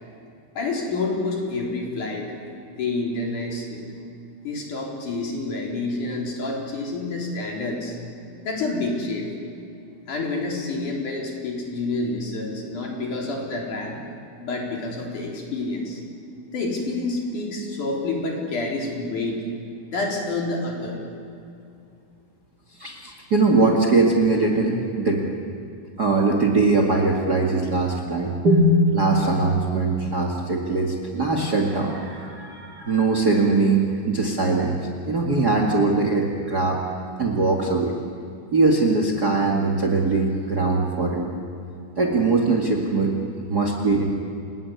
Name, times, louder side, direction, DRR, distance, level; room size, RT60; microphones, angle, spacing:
voice 1, 0.6-2.4 2.8-3.8 4.4-8.0 8.5-9.3 10.1-14.0 14.4-16.0 16.5-19.4 19.9-21.0, left 2 dB, 80° left, -1 dB, 5.4 m, -28 dB
voice 2, 22.8-25.2 26.0-34.8 35.1-36.8 37.2-38.0 38.5-41.4 42.0-43.2 43.5-44.1, right 3 dB, 35° right, 1 dB, 2.5 m, -21 dB
30.0 x 20.5 x 9.7 m, 2.5 s
omnidirectional pair, 3.5 m